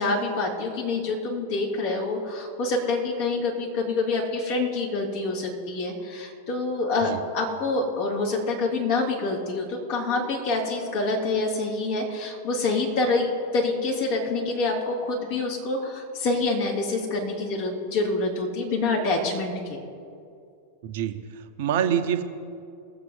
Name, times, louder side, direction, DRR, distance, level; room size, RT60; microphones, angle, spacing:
voice 1, 0.0-19.8, left 3 dB, 50° left, -1 dB, 3.0 m, -26 dB
voice 2, 20.8-22.2, right 9 dB, 50° right, 8 dB, 1.0 m, -26 dB
21.0 x 7.8 x 4.0 m, 2.4 s
figure-of-eight pair, 90°, 0 cm